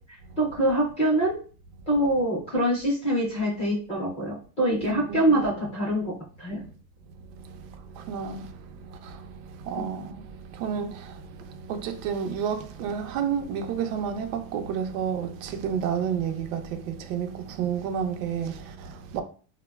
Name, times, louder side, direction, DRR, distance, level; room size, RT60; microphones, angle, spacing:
voice 1, 0.4-1.4 1.9-6.1 6.4-6.6, right 1 dB, 15° left, 0.4 m, -24 dB
voice 2, 4.8-5.5 7.3-19.2, right 7 dB, 60° right, 0.5 m, -31 dB
3.5 x 2.1 x 2.2 m
cardioid pair, 175°, 45 cm